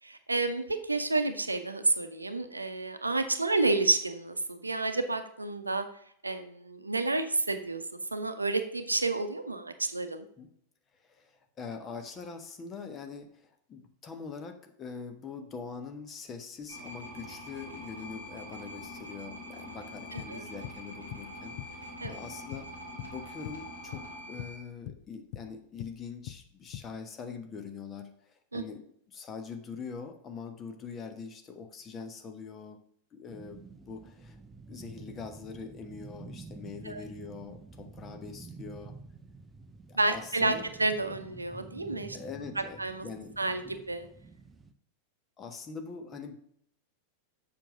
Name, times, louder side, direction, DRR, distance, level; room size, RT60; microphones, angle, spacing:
voice 1, 0.0-5.8 6.2-7.8 8.1-10.2 20.1-20.4 22.0-22.1 28.5-28.6 36.8-37.0 40.0-42.2 42.8-43.1 43.4-44.1, right 2 dB, 80° right, 9 dB, 0.7 m, -30 dB
voice 2, 11.0-22.7 23.0-32.8 33.1-34.4 34.7-39.0 39.9-40.6 42.1-43.4 43.6-43.8 45.4-46.4, left 5 dB, 25° left, 6 dB, 1.2 m, -43 dB
sound 1, 16.7-24.6, equal, 85° left, 3.3 m, -44 dB
sound 2, 20.2-23.2 23.4-23.7 23.9-27.0, left 12 dB, 50° left, 0.4 m, -43 dB
sound 3, 33.3-44.7, right 3 dB, 15° right, 0.7 m, -49 dB
7.5 x 5.7 x 4.8 m, 0.68 s
figure-of-eight pair, 90°, 0 cm